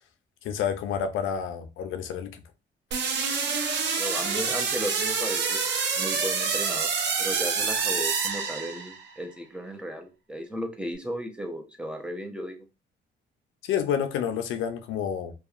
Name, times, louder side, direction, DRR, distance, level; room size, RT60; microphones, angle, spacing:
voice 1, 0.4-2.4 13.6-15.3, left 8 dB, 80° left, 0.5 m, -29 dB
sound 1, 2.9-9.1, right 5 dB, 65° right, 0.6 m, -27 dB
voice 2, 3.9-5.6 5.9-6.9 7.2-12.6, equal, 5° right, 0.7 m, -35 dB
2.7 x 2.3 x 2.4 m
cardioid pair, 90°, 20 cm